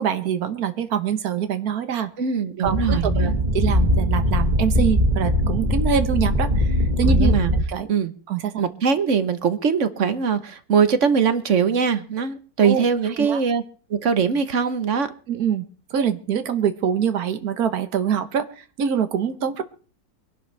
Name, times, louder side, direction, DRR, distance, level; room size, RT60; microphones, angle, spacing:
voice 1, 0.0-2.1 2.6-7.4 7.7-7.9 8.3-8.6 12.6-12.8 13.2-13.4 15.3-15.6 15.9-19.6, right 8 dB, 75° right, 9 dB, 1.6 m, -25 dB
voice 2, 2.2-3.3 7.0-7.5 7.9-8.1 8.6-13.6 13.9-15.1, right 6 dB, 55° right, 11 dB, 1.2 m, -21 dB
sound 1, 2.6-7.6, left 1 dB, 30° right, 2.0 m, -20 dB
23.5 x 12.0 x 3.3 m, 0.38 s
omnidirectional pair, 1.6 m